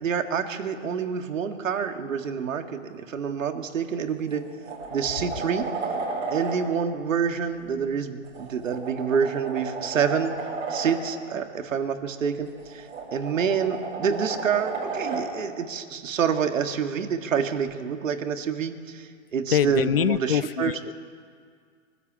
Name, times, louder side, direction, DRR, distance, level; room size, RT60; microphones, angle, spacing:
voice 1, 0.0-4.5 4.9-5.7 6.3-10.3 10.7-20.7, right 7 dB, 85° right, 6 dB, 2.0 m, -27 dB
sound 1, 3.7-3.9 4.3-6.6 8.2-11.0 12.5-15.3 17.6-17.7, right 4 dB, 55° right, 7.8 m, -33 dB
voice 2, 19.5-20.9, left 10 dB, 50° left, 17 dB, 0.5 m, -24 dB
23.5 x 13.0 x 8.8 m, 2.1 s
hypercardioid pair, 175°, 38 cm